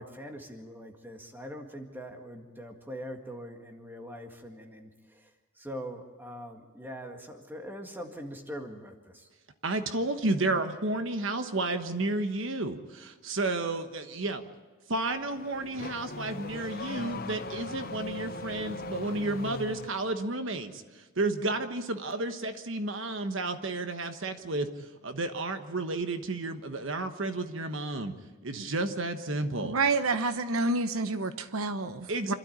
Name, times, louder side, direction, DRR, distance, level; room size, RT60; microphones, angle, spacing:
voice 1, 0.0-9.3, equal, 10° right, 4 dB, 1.9 m, -42 dB
voice 2, 9.6-14.5 14.9-20.8 21.2-24.7 25.0-28.1 28.4-29.8 32.1-32.3, right 2 dB, 65° right, 8 dB, 1.3 m, -31 dB
Car / Accelerating revving vroom, 15.1-20.1, left 3 dB, 45° left, 0.8 m, -39 dB
voice 3, 29.6-32.3, right 3 dB, 90° right, 11 dB, 1.0 m, -29 dB
27.0 x 12.5 x 8.8 m, 1.4 s
head